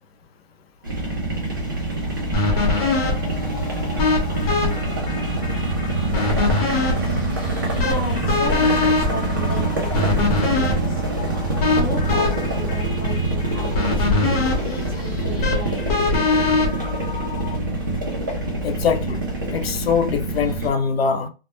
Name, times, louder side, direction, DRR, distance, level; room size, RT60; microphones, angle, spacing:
sound 1, 0.8-20.7, right 2 dB, 20° right, 0.3 m, -25 dB
sound 2, 2.3-17.6, left 3 dB, 35° left, 0.9 m, -23 dB
voice 1, 3.8-4.5 18.6-19.2 19.5-21.3, left 6 dB, 70° left, 0.6 m, -23 dB
voice 2, 7.7-11.0 11.7-15.8, left 2 dB, 20° left, 0.6 m, -34 dB
2.1 x 2.1 x 2.9 m
hypercardioid pair, 155°, 31 cm